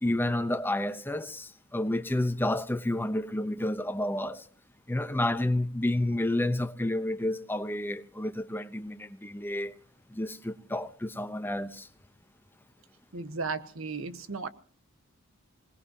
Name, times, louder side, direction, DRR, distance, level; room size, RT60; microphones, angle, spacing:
voice 1, 0.0-4.4 4.9-9.8 10.1-11.9, left 1 dB, 10° left, 0.9 m, -30 dB
voice 2, 13.1-14.5, right 4 dB, 75° right, 1.3 m, -35 dB
26.0 x 19.0 x 2.9 m
head